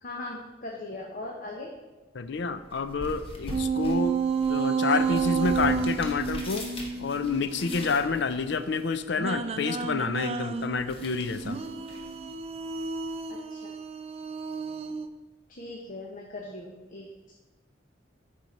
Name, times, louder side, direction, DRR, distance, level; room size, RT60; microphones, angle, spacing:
voice 1, 0.0-1.7 13.5-13.7 15.5-17.3, left 2 dB, 45° left, 0 dB, 0.9 m, -39 dB
voice 2, 2.1-4.2 4.5-6.7 7.0-11.6, left 4 dB, 65° left, 12 dB, 0.5 m, -28 dB
sound 1, 2.2-13.2, left 1 dB, 30° left, 1.3 m, -44 dB
sound 2, 3.5-8.0 9.2-15.1, right 5 dB, 30° right, 0.4 m, -30 dB
9.3 x 4.5 x 5.3 m, 1.2 s
head